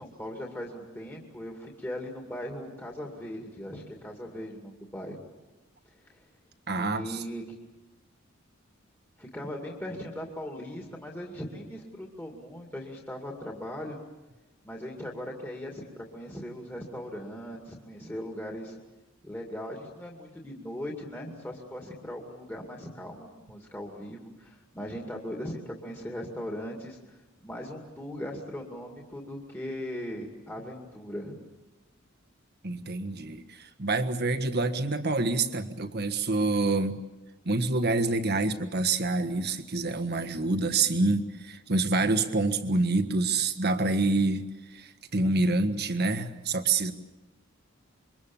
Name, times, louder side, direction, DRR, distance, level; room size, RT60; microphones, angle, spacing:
voice 1, 0.0-5.2 5.9-6.2 6.7-7.4 9.2-14.0 14.6-18.8 19.2-27.2 27.4-31.4, equal, 10° left, -1 dB, 2.4 m, -39 dB
voice 2, 6.7-7.2 32.6-37.0 37.4-46.9, right 3 dB, 55° right, 9 dB, 1.5 m, -27 dB
27.0 x 23.5 x 7.2 m, 1.1 s
head